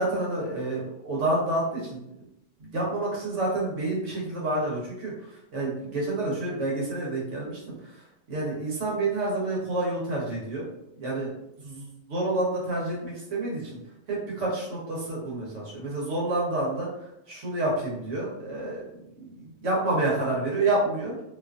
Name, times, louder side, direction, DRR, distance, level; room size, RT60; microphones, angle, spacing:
voice 1, 0.0-2.0 2.6-10.7 11.0-11.3 11.6-13.7 14.1-18.8 19.2-21.2, right 2 dB, 85° right, -4 dB, 1.3 m, -29 dB
2.7 x 2.5 x 2.3 m, 0.80 s
omnidirectional pair, 1.2 m